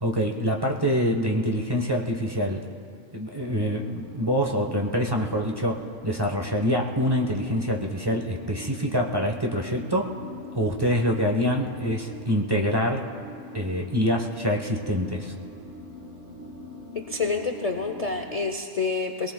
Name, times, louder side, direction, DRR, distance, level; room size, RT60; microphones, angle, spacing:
voice 1, 0.0-2.7 3.1-5.8 6.0-10.1 10.5-13.1 13.5-15.3, equal, 20° right, 1 dB, 1.0 m, -25 dB
sound 1, 3.4-18.5, equal, 45° right, 1.5 m, -43 dB
voice 2, 16.9-19.3, left 4 dB, 40° left, 3 dB, 0.6 m, -28 dB
22.5 x 18.5 x 2.3 m, 2.4 s
omnidirectional pair, 1.2 m